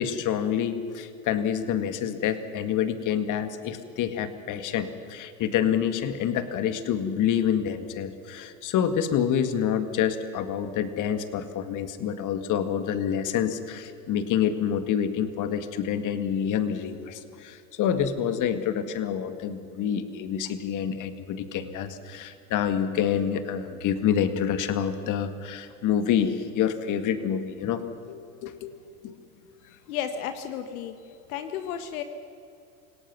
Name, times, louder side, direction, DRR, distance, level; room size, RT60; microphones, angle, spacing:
voice 1, 0.0-28.7 29.0-29.2, left 8 dB, 40° left, 10 dB, 1.9 m, -27 dB
voice 2, 29.9-32.0, left 9 dB, 70° left, 8 dB, 1.5 m, -33 dB
27.5 x 17.5 x 6.1 m, 2.5 s
hypercardioid pair, 100°, 45 cm